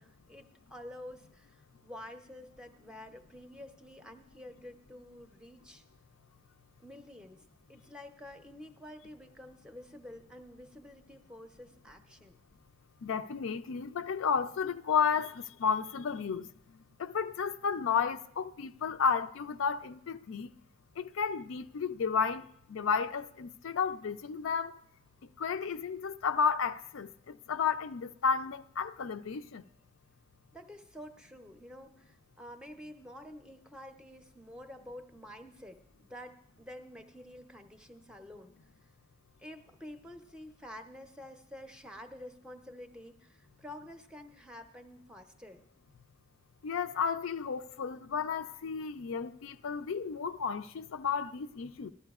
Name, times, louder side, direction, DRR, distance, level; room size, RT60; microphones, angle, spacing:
voice 1, 0.0-5.8 6.8-12.4 30.5-38.6 39.4-45.6, left 1 dB, 5° right, 0.6 m, -49 dB
voice 2, 13.0-16.5 17.0-20.5 21.0-22.4 22.7-24.8 25.4-29.6 46.6-51.9, left 6 dB, 75° left, 0.4 m, -32 dB
19.0 x 12.5 x 2.4 m
head